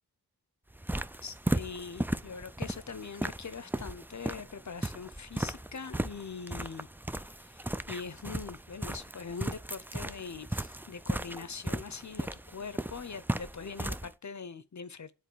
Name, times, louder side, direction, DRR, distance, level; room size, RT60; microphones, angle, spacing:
sound 1, 0.7-14.1, right 1 dB, 5° right, 0.3 m, -36 dB
voice 1, 1.2-6.9 7.2-15.1, left 5 dB, 45° left, 0.7 m, -42 dB
9.4 x 4.0 x 4.6 m
wide cardioid pair, 50°, 40 cm